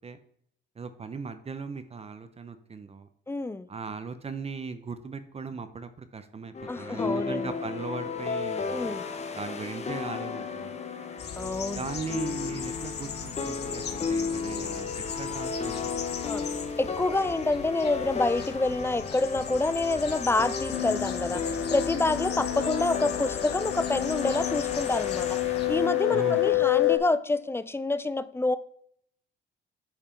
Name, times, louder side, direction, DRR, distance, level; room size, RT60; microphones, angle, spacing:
voice 1, 0.8-3.1 3.7-9.0 9.3-10.8 11.7-13.8 14.1-16.0 26.1-26.7, right 5 dB, 30° right, 10 dB, 0.7 m, -38 dB
voice 2, 3.3-3.7 6.7-7.5 8.7-9.0 11.4-11.8 16.3-16.4 16.8-21.4 21.7-25.4 25.7-28.6, left 2 dB, 10° left, 14 dB, 0.4 m, -27 dB
sound 1, 6.5-26.5, left 5 dB, 35° left, 1.0 m, -34 dB
sound 2, 11.2-25.9, left 7 dB, 55° left, 1.0 m, -39 dB
sound 3, 20.7-27.0, left 16 dB, 85° left, 0.9 m, -28 dB
8.9 x 3.5 x 4.4 m, 0.68 s
cardioid pair, 90°, 20 cm